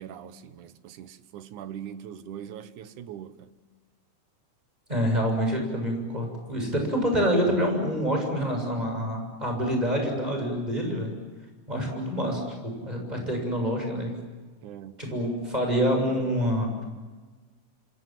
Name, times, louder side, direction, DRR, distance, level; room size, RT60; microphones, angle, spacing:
voice 1, 0.0-3.5 14.6-15.1, right 9 dB, 75° right, 2.5 m, -41 dB
voice 2, 4.9-11.1 11.7-14.1 15.0-16.8, equal, 10° right, 7.2 m, -27 dB
28.0 x 27.5 x 7.7 m
omnidirectional pair, 3.7 m